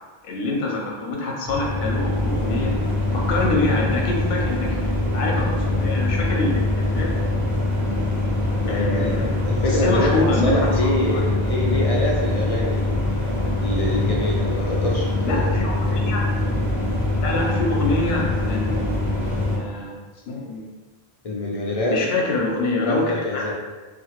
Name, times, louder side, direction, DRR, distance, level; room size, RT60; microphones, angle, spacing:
voice 1, 0.2-2.8 3.1-4.9 5.1-7.1 8.7-10.7 11.1-11.2 15.2-16.2 17.2-18.8 19.6-20.0 20.3-20.7 21.9-23.4, left 2 dB, 80° left, -1 dB, 0.8 m, -25 dB
sound 1, 1.4-19.6, left 2 dB, 60° right, 1.1 m, -23 dB
voice 2, 8.6-13.1 13.6-15.4 21.2-22.0 22.8-23.5, left 1 dB, 50° left, -2 dB, 0.4 m, -25 dB
2.8 x 2.5 x 2.9 m, 1.3 s
omnidirectional pair, 1.0 m